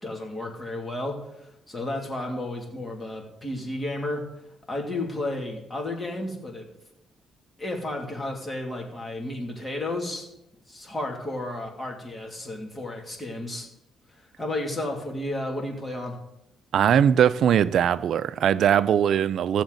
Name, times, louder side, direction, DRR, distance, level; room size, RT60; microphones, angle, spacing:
voice 1, 0.0-4.2 4.7-6.7 7.6-10.3 10.7-13.7 14.1-16.2, left 1 dB, 20° left, 2.6 m, -32 dB
voice 2, 16.7-19.6, right 9 dB, 70° right, 0.4 m, -20 dB
15.5 x 7.2 x 4.0 m
cardioid pair, 90°, 0 cm